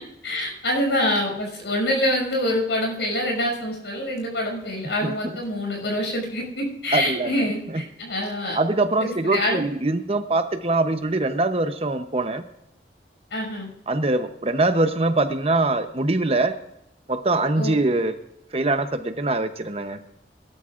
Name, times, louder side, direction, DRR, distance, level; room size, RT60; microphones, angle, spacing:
voice 1, 0.2-8.6 9.0-9.6 13.3-13.7 17.6-17.8, left 1 dB, 80° left, 1 dB, 6.1 m, -25 dB
voice 2, 6.9-7.5 8.5-12.4 13.9-16.5 17.1-18.1 18.5-20.0, right 2 dB, 35° right, 8 dB, 0.8 m, -23 dB
21.5 x 12.0 x 2.5 m, 0.79 s
head